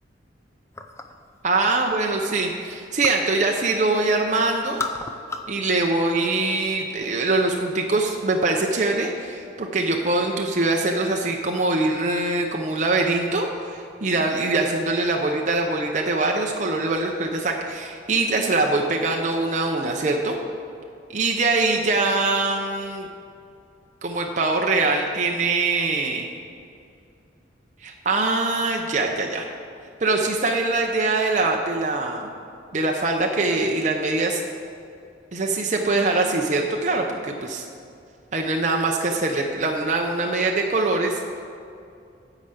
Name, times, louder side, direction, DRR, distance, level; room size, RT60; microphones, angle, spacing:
sound 1, 0.7-1.3 1.7-3.3 3.6-4.2 4.5-5.6 5.9-6.7, left 3 dB, 15° left, 0.4 m, -34 dB
voice 1, 1.4-4.8 5.5-20.4 21.1-23.1 24.0-26.3 27.8-29.4 30.0-32.3 32.7-34.4 35.3-37.6 38.3-41.2, right 3 dB, 40° right, 1 dB, 0.6 m, -23 dB
9.8 x 4.9 x 7.8 m, 2.5 s
head